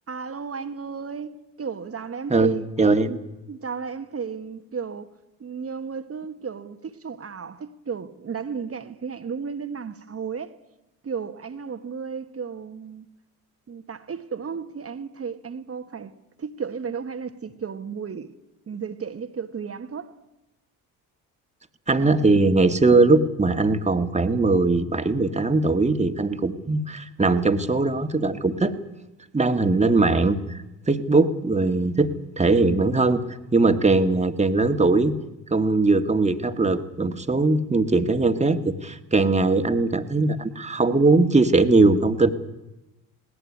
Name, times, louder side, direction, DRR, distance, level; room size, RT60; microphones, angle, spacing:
voice 1, 0.1-3.2 3.5-5.1 5.4-10.5 11.0-13.1 13.7-16.1 16.4-18.3 18.7-20.2, right 6 dB, 35° right, 1.4 m, -34 dB
voice 2, 2.3-3.1 21.9-28.7 29.3-30.6 30.9-32.1 32.4-33.2 33.5-35.1 35.5-42.3, right 3 dB, 15° right, 1.8 m, -20 dB
19.5 x 17.5 x 9.9 m
hypercardioid pair, 60°, 42 cm